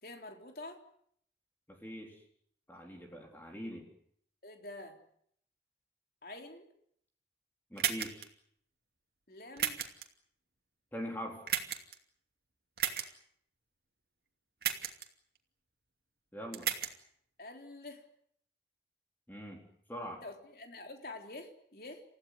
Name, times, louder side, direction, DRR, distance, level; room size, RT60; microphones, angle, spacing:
voice 1, 0.0-0.8 4.4-5.0 6.2-6.7 9.3-9.8 17.4-18.0 20.2-22.0, left 2 dB, 55° left, 3 dB, 3.9 m, -47 dB
voice 2, 1.7-2.2 2.7-3.9 7.7-8.3 10.9-11.5 16.3-16.7 19.3-20.2, equal, 10° left, 1 dB, 3.9 m, -43 dB
sound 1, 7.8-8.3 9.6-10.0 11.5-11.9 12.8-13.1 14.6-15.1 16.5-16.9, right 9 dB, 60° right, 2.6 m, -33 dB
29.5 x 16.0 x 9.5 m, 0.69 s
head